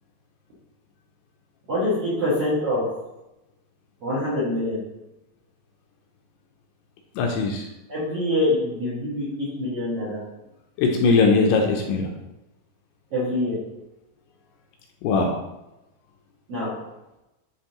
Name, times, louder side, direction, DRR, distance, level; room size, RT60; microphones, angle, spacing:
voice 1, 1.7-2.8 4.0-4.8 7.9-10.2 13.1-13.6 16.5-16.7, left 1 dB, 50° right, -9 dB, 1.8 m, -25 dB
voice 2, 7.2-7.7 10.8-12.1 15.0-15.4, left 4 dB, 80° left, 2 dB, 2.6 m, -20 dB
9.8 x 3.8 x 3.0 m, 0.95 s
omnidirectional pair, 5.1 m